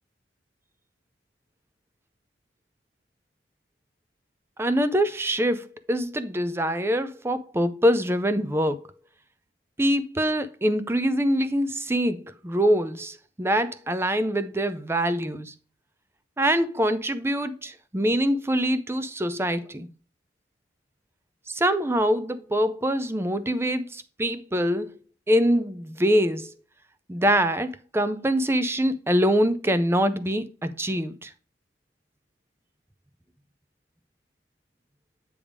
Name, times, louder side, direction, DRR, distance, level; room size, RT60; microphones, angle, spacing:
voice 1, 4.6-8.9 9.8-15.5 16.4-19.9 21.5-24.9 25.3-26.5 27.1-31.3, equal, 15° right, 0.5 m, -24 dB
8.7 x 3.5 x 4.7 m
head